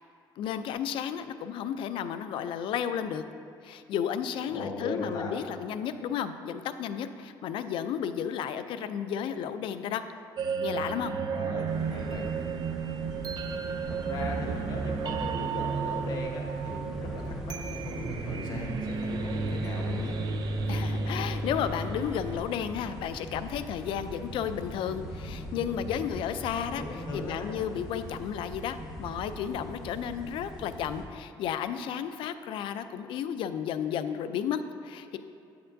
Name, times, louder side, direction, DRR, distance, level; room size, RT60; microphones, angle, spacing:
voice 1, 0.4-3.2 3.6-10.0 10.6-11.1 20.7-35.2, left 8 dB, 70° left, 11 dB, 0.4 m, -33 dB
voice 2, 4.5-5.3 11.3-12.3 13.9-20.2 26.7-27.5, left 2 dB, 50° left, -1 dB, 1.2 m, -38 dB
sound 1, 10.4-23.3, right 4 dB, 50° right, 0.4 m, -33 dB
sound 2, 11.7-31.0, equal, ahead, 1.2 m, -42 dB
8.4 x 6.8 x 2.6 m, 2.6 s
cardioid pair, 125°, 9 cm